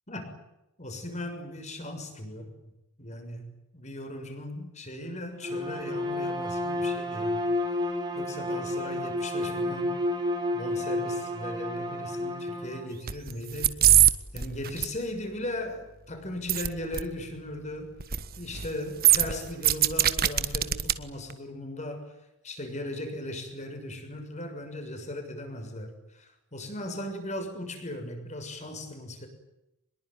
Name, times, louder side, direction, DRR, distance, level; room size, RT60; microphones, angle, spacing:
voice 1, 0.1-0.4 0.8-2.5 3.0-7.4 8.1-10.0 10.5-13.8 14.3-18.0 18.4-22.1 22.4-29.3, left 1 dB, 30° left, 6 dB, 6.6 m, -38 dB
Bowed string instrument, 5.4-12.9, left 1 dB, 20° right, 4.6 m, -31 dB
sound 1, 13.1-13.3 13.6-14.1 14.4-14.9 16.5-16.7 16.9-17.0 18.0-18.3 18.5-18.7 19.0-20.9 21.3-21.4, right 12 dB, 45° right, 1.4 m, -21 dB
25.0 x 22.0 x 9.6 m, 0.90 s
head